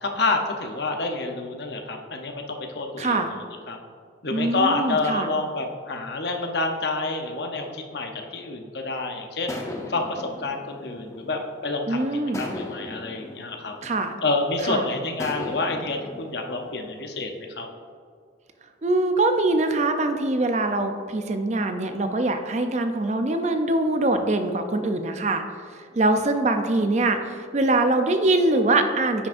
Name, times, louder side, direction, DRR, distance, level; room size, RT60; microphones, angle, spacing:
voice 1, 0.0-3.4 3.7-3.8 4.2-9.5 9.9-12.0 12.4-13.7 14.2-17.7, left 3 dB, 65° left, 3 dB, 0.8 m, -28 dB
voice 2, 3.0-3.3 4.3-5.3 11.9-12.4 13.8-14.1 14.6-14.9 18.8-25.4 25.7-29.3, right 2 dB, 40° right, 7 dB, 0.5 m, -23 dB
sound 1, 9.5-11.7 12.3-14.5 15.2-17.4, left 1 dB, 15° left, 0.6 m, -38 dB
9.7 x 6.0 x 2.6 m, 2.1 s
head